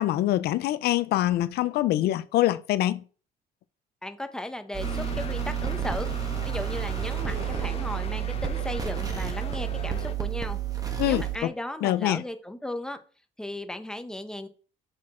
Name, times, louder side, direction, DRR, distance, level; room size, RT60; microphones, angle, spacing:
voice 1, 0.0-3.0 11.0-11.5 11.8-12.2, left 14 dB, 70° left, 0.4 m, -24 dB
voice 2, 4.0-6.1 6.4-10.6 10.9-13.0 13.4-14.5, left 1 dB, 5° left, 0.8 m, -36 dB
sound 1, 4.7-11.4, right 11 dB, 20° right, 1.2 m, -30 dB
sound 2, 4.8-10.1, left 5 dB, 35° left, 0.8 m, -39 dB
sound 3, 5.7-10.4, right 2 dB, 45° right, 2.9 m, -46 dB
6.3 x 4.2 x 4.2 m
cardioid pair, 110°, 17 cm